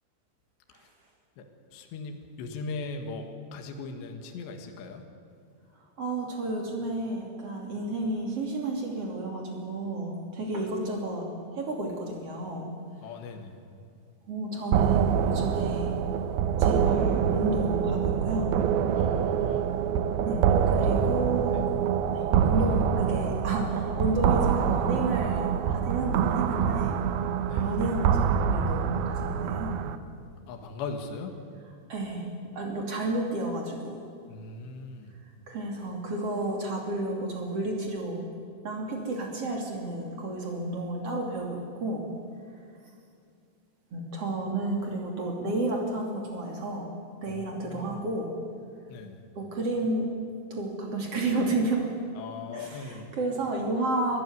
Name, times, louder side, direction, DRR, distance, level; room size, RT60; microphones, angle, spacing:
voice 1, 1.7-5.1 13.0-13.6 18.9-19.7 20.9-21.0 27.5-27.7 30.5-31.4 34.3-35.2 47.3-48.0 48.9-49.2 52.2-53.1, left 4 dB, 65° left, 4 dB, 3.8 m, -39 dB
voice 2, 6.0-11.3 11.5-12.7 13.0-13.1 14.3-15.9 16.6-18.5 20.2-21.6 22.1-27.0 27.5-29.8 31.9-32.3 32.5-34.0 35.5-38.2 38.6-42.1 43.9-46.9 47.2-48.3 49.3-50.1 50.5-51.9 52.5-54.2, right 2 dB, 35° right, 1 dB, 3.0 m, -31 dB
sound 1, 14.7-30.0, right 8 dB, 85° right, 2.2 m, -25 dB
24.0 x 15.5 x 9.5 m, 2.4 s
omnidirectional pair, 5.7 m